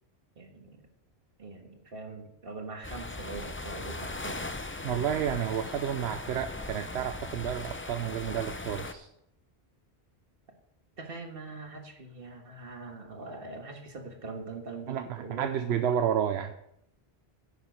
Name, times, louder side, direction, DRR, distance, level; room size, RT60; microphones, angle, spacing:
voice 1, 0.4-0.8 1.4-4.5 11.0-15.8, right 3 dB, 60° right, 3 dB, 1.8 m, -42 dB
sound 1, 2.8-8.9, left 2 dB, 15° left, 0.4 m, -39 dB
voice 2, 4.8-9.1 14.9-16.5, right 9 dB, 80° right, 8 dB, 0.9 m, -31 dB
10.5 x 7.6 x 5.2 m, 0.78 s
omnidirectional pair, 1.1 m